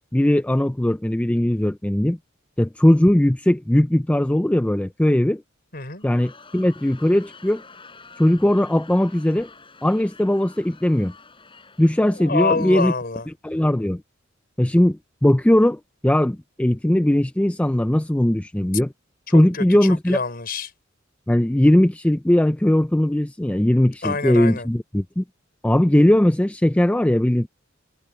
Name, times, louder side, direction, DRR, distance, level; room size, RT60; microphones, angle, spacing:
voice 1, 0.1-2.2 2.6-5.4 6.0-7.6 8.2-9.5 9.8-11.1 11.8-12.9 13.4-14.0 14.6-18.9 19.3-20.2 21.3-25.2 25.6-27.5, left 1 dB, 5° left, 0.4 m, -19 dB
voice 2, 5.7-6.0 12.2-13.3 19.3-20.7 24.0-24.7, left 3 dB, 50° left, 5.0 m, -26 dB
Crowd, 6.0-13.2, left 4 dB, 25° left, 6.3 m, -48 dB
head